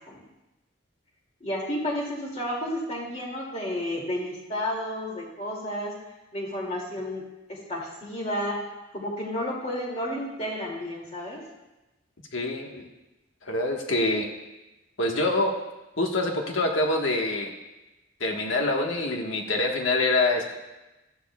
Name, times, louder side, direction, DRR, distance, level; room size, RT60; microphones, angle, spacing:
voice 1, 1.4-6.0 6.3-8.6 8.9-11.4, left 1 dB, 30° left, -3 dB, 2.4 m, -31 dB
voice 2, 12.3-12.9 13.4-14.3 15.0-15.5 16.0-17.5 18.2-20.5, left 2 dB, 75° left, 1 dB, 1.4 m, -25 dB
14.0 x 11.0 x 2.3 m, 1.0 s
head